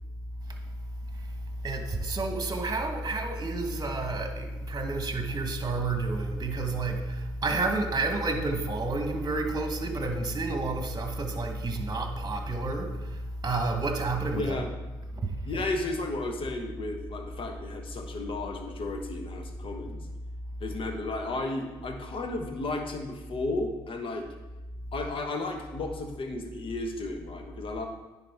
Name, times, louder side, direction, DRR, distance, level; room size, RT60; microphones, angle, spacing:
voice 1, 1.6-14.6 15.1-15.6, right 2 dB, 30° right, 4 dB, 1.3 m, -30 dB
voice 2, 14.4-14.7 15.4-20.0 20.6-24.3 24.9-27.8, left 2 dB, 50° left, 4 dB, 1.1 m, -33 dB
10.0 x 4.2 x 3.5 m, 1.1 s
hypercardioid pair, 50°, 12 cm